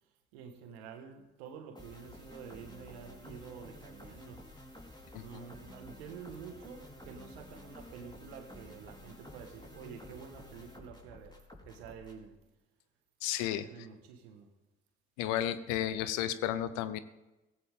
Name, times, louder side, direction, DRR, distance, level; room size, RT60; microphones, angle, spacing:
voice 1, 0.3-4.5 5.2-12.4 13.6-14.5, right 6 dB, 85° right, 1.7 m, -49 dB
sound 1, 1.8-12.3, left 1 dB, 15° left, 4.2 m, -52 dB
voice 2, 13.2-13.7 15.2-17.0, left 12 dB, 80° left, 0.9 m, -33 dB
16.0 x 16.0 x 3.8 m
hypercardioid pair, 50°, 30 cm